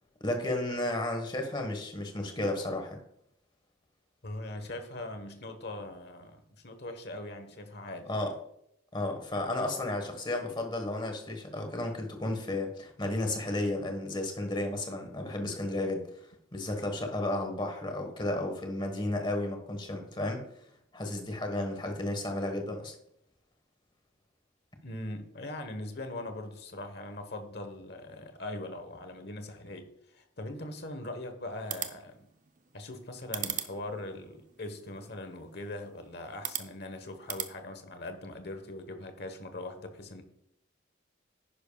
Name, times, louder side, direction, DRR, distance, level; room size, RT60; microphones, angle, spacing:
voice 1, 0.2-3.0 8.1-8.3 8.9-16.1 16.5-20.4 20.9-22.9, left 1 dB, 25° left, 4 dB, 1.4 m, -33 dB
voice 2, 4.2-8.1 24.8-32.3 32.7-40.2, left 1 dB, 50° left, 7 dB, 1.2 m, -41 dB
sound 1, 31.5-37.5, right 10 dB, 40° right, 0.6 m, -41 dB
10.5 x 10.5 x 2.3 m, 0.76 s
head